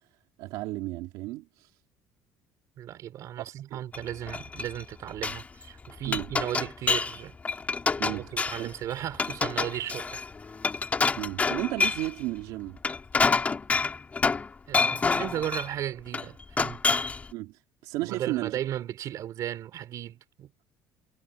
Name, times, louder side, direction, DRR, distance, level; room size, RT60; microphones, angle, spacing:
voice 1, 0.4-1.7 3.7-3.8 6.1-6.3 8.0-8.3 8.6-8.7 11.2-12.8 17.3-18.6, right 18 dB, 85° right, 2.7 m, -33 dB
voice 2, 2.8-7.4 8.1-10.2 14.7-16.8 18.0-20.5, right 11 dB, 55° right, 4.4 m, -35 dB
Glass, 3.9-4.8 5.1-5.4 5.9-7.2 7.5-8.7 9.1-12.1 12.7-14.5 14.7-15.7 16.1-17.3, left 4 dB, 20° left, 2.3 m, -27 dB
cardioid pair, 130°, 7 cm